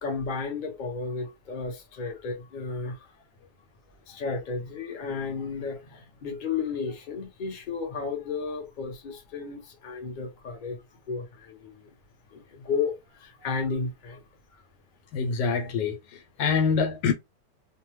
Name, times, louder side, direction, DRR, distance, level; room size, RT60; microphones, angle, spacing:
voice 1, 0.0-3.1 4.1-10.8 11.1-11.9 12.3-14.2 14.5-14.6, left 4 dB, 40° left, 0.7 m, -33 dB
voice 2, 15.1-17.1, left 5 dB, 85° left, 1.3 m, -25 dB
2.7 x 2.2 x 3.1 m
omnidirectional pair, 1.9 m